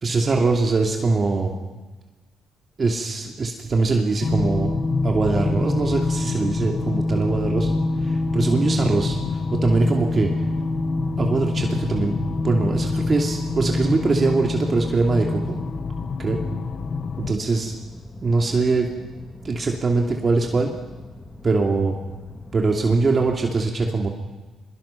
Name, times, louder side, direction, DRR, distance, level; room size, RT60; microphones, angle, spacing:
voice 1, 0.0-1.5 2.8-4.7 5.0-7.7 8.0-10.3 11.2-12.2 12.4-15.6 16.2-16.4 17.3-17.8 18.2-18.9 19.4-20.7 21.4-22.0 22.5-24.1, right 3 dB, 35° right, 1 dB, 2.7 m, -22 dB
sound 1, 4.2-17.3, left 3 dB, 50° left, 1.3 m, -25 dB
sound 2, 7.9-23.4, left 2 dB, 15° left, 2.2 m, -43 dB
24.0 x 23.0 x 5.9 m, 1.2 s
cardioid pair, 90°, 0 cm